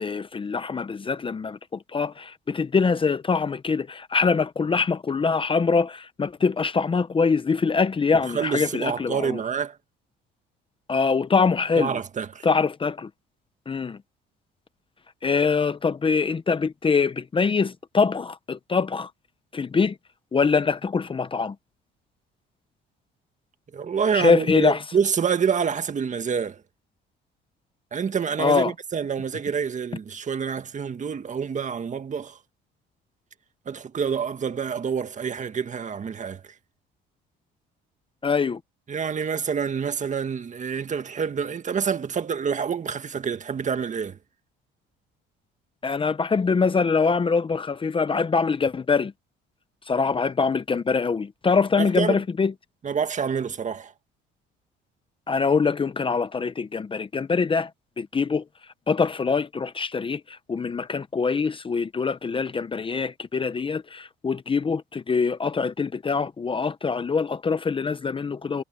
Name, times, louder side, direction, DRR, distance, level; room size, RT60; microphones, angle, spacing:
voice 1, 0.0-9.4 10.9-12.0 12.4-13.1 13.7-14.0 15.2-19.1 19.5-20.0 20.3-21.6 24.1-24.8 28.4-28.7 38.2-38.6 45.8-49.1 49.9-52.5 55.3-57.7 58.0-58.4 58.9-68.6, left 5 dB, 25° left, 0.8 m, -24 dB
voice 2, 8.3-9.8 11.8-12.5 23.7-26.6 27.9-32.4 33.7-36.4 38.9-44.2 51.8-52.2 52.8-53.9, right 6 dB, 35° right, 1.7 m, -27 dB
cardioid pair, 95°, 21 cm